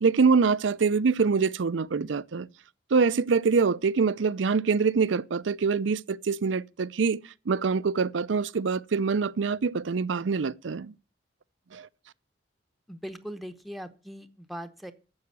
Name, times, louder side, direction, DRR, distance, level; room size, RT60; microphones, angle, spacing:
voice 1, 0.0-2.5 2.9-10.9 11.7-11.9, right 5 dB, 80° right, 0.5 m, -25 dB
voice 2, 12.9-14.9, equal, ahead, 0.8 m, -40 dB
9.6 x 7.1 x 8.1 m
head